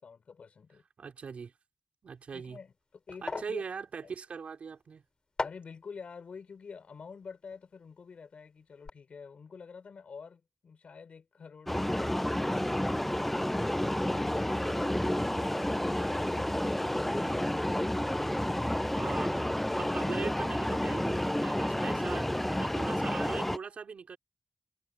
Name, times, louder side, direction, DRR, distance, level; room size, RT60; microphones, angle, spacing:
voice 1, 0.0-0.8 2.3-3.6 4.0-4.1 5.4-12.1 13.8-17.7, left 5 dB, 80° left, 4.5 m, -48 dB
voice 2, 1.0-1.5 2.0-2.6 3.2-5.0 18.9-19.4 19.7-24.2, right 6 dB, 85° right, 5.0 m, -41 dB
sound 1, 2.2-8.3 8.6-8.9, left 3 dB, 45° left, 4.5 m, -42 dB
sound 2, 11.7-23.6, left 1 dB, 10° left, 0.4 m, -30 dB
wide cardioid pair, 95°, 2 cm